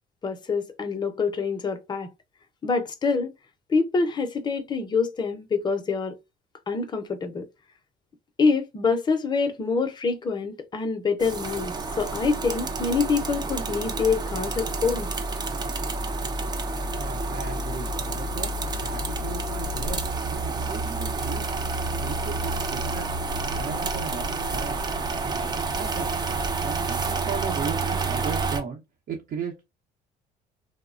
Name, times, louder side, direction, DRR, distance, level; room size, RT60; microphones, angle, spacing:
voice 1, 0.2-2.1 2.6-3.3 3.7-6.1 6.7-7.5 8.4-15.1, left 4 dB, 25° left, 0.6 m, -26 dB
sound 1, 11.2-28.6, right 3 dB, 25° right, 0.4 m, -29 dB
voice 2, 17.0-18.5 18.8-20.0 20.3-21.4 22.0-23.2 23.5-24.8 25.2-26.1 26.4-28.8 29.1-29.6, right 6 dB, 55° right, 0.8 m, -36 dB
3.0 x 2.0 x 2.4 m
cardioid pair, 110°, 17 cm